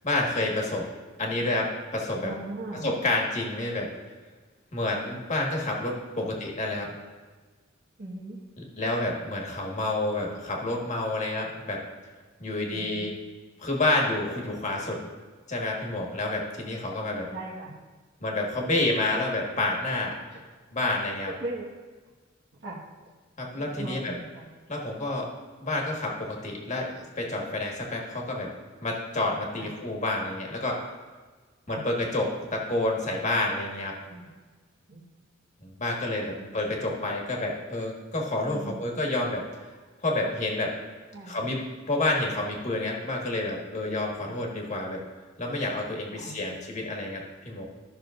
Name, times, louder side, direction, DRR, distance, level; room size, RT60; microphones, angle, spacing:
voice 1, 0.0-0.9 1.2-2.3 2.8-3.9 4.7-6.9 8.8-11.8 12.4-13.1 13.6-15.1 15.5-17.3 18.2-20.2 20.7-21.3 23.4-24.1 24.7-25.3 25.6-28.5 28.8-30.8 31.7-33.9 35.6-39.4 40.0-40.7 41.2-45.0 45.4-47.7, left 2 dB, 40° left, -1 dB, 1.6 m, -29 dB
voice 2, 2.2-2.9 6.2-6.3 8.0-8.4 12.7-13.2 17.3-17.7 20.3-20.4 21.2-21.7 22.6-22.8 23.6-24.5 29.6-29.7 31.7-31.8 34.1-34.3 34.9-35.1 36.3-36.5 38.5-38.8 41.1-41.4 44.2-44.4 46.1-46.5, right 2 dB, 60° right, -5 dB, 1.5 m, -39 dB
14.5 x 6.1 x 2.6 m, 1.4 s
head